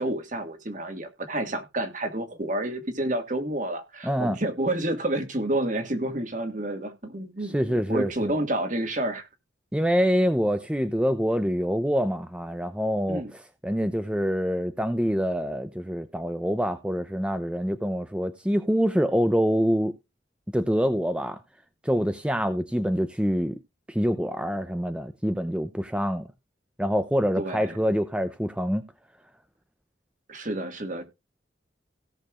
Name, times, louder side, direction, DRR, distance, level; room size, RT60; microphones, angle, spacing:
voice 1, 0.0-9.3 13.1-13.3 27.4-27.8 30.3-31.1, right 1 dB, 45° right, 1.9 m, -29 dB
voice 2, 4.0-4.4 7.4-8.3 9.7-19.9 20.5-21.4 21.8-23.6 23.9-26.3 26.8-28.8, equal, 5° right, 0.6 m, -25 dB
17.0 x 6.6 x 2.5 m
head